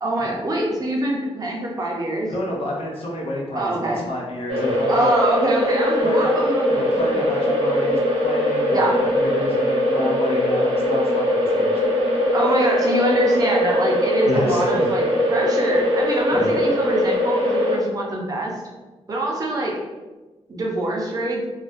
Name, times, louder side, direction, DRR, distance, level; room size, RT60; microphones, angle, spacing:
voice 1, 0.0-2.3 3.5-4.1 4.9-6.8 7.1-7.2 8.7-9.0 12.3-18.5 19.1-19.7 20.5-21.4, right 1 dB, 35° right, -2 dB, 0.5 m, -24 dB
voice 2, 2.3-5.2 6.0-6.3 6.7-11.8 14.2-14.9 16.3-16.6, left 1 dB, 60° left, -3 dB, 0.6 m, -29 dB
sound 1, 4.5-17.8, left 1 dB, 65° right, 0.8 m, -21 dB
2.3 x 2.2 x 2.4 m, 1.2 s
wide cardioid pair, 140°, 11 cm